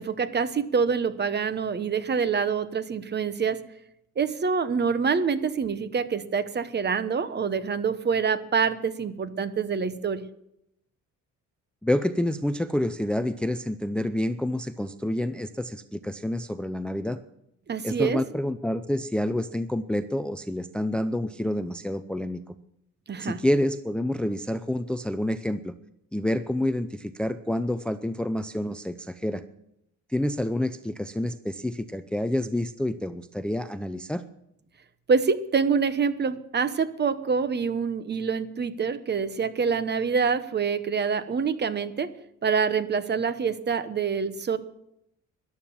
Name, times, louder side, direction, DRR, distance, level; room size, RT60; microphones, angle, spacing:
voice 1, 0.0-3.6 4.2-10.2 17.7-18.2 23.1-23.4 35.1-42.1 42.4-44.6, right 5 dB, 35° right, 13 dB, 1.0 m, -26 dB
voice 2, 11.8-17.2 17.8-22.5 23.2-25.7 26.1-29.4 30.1-34.2, left 1 dB, 5° left, 11 dB, 0.5 m, -28 dB
14.0 x 11.5 x 7.2 m, 0.78 s
cardioid pair, 145°, 31 cm